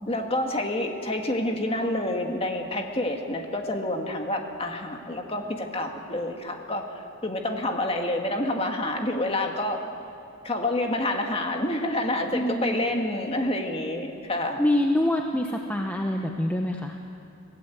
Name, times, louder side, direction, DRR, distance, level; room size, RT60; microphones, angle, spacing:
voice 1, 0.1-9.8 10.4-14.6, left 1 dB, 25° left, 3 dB, 1.9 m, -28 dB
voice 2, 12.3-13.1 14.6-17.0, left 1 dB, 10° left, 2 dB, 0.9 m, -26 dB
25.0 x 17.5 x 8.1 m, 2.7 s
head